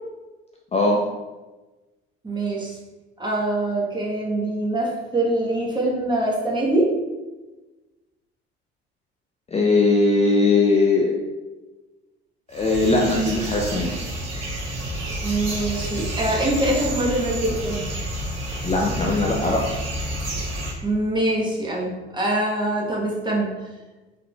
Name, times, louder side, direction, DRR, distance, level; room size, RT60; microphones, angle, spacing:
voice 1, 0.7-1.0 9.5-11.1 12.5-14.0 18.6-19.7, left 3 dB, 20° left, -1 dB, 0.5 m, -20 dB
voice 2, 2.2-2.8 3.2-6.9 15.2-17.8 20.8-23.5, right 1 dB, 15° right, -4 dB, 1.1 m, -24 dB
sound 1, 12.5-20.7, right 1 dB, 50° right, 1.2 m, -29 dB
3.9 x 3.4 x 2.3 m, 1.2 s
hypercardioid pair, 60°, 31 cm